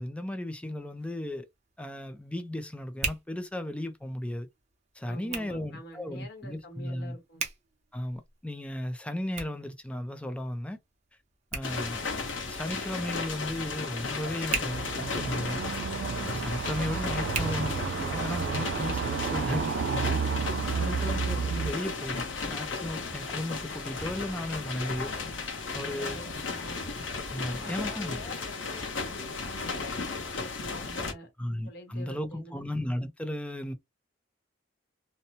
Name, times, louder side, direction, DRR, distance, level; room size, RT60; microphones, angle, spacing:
voice 1, 0.0-1.5 1.8-4.5 5.0-7.2 7.9-10.8 11.5-12.0 12.5-15.6 16.3-20.2 20.6-25.1 25.7-26.2 27.3-28.2 31.4-33.7, left 1 dB, 5° left, 0.4 m, -35 dB
Hands, 0.7-18.4, right 4 dB, 35° right, 0.8 m, -43 dB
voice 2, 5.0-7.4 16.7-17.3 20.7-21.0 25.8-26.8 27.3-31.3 31.6-32.6, left 1 dB, 65° left, 1.2 m, -46 dB
sound 1, 11.6-31.1, left 4 dB, 90° left, 0.9 m, -35 dB
sound 2, 14.7-21.7, right 6 dB, 65° right, 0.3 m, -31 dB
2.7 x 2.1 x 2.8 m
head